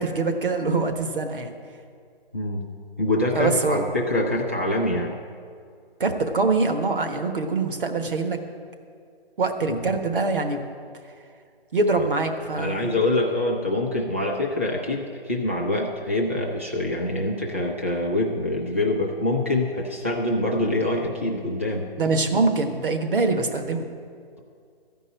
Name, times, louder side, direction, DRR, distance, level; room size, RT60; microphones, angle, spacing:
voice 1, 0.0-1.5 3.3-3.8 6.0-8.4 9.4-10.6 11.7-12.9 22.0-23.8, right 3 dB, 60° right, 5 dB, 1.3 m, -24 dB
voice 2, 2.3-2.6 3.0-5.1 9.7-9.9 12.6-21.9, left 1 dB, 15° right, -2 dB, 0.5 m, -25 dB
14.0 x 5.4 x 8.9 m, 2.2 s
hypercardioid pair, 175°, 31 cm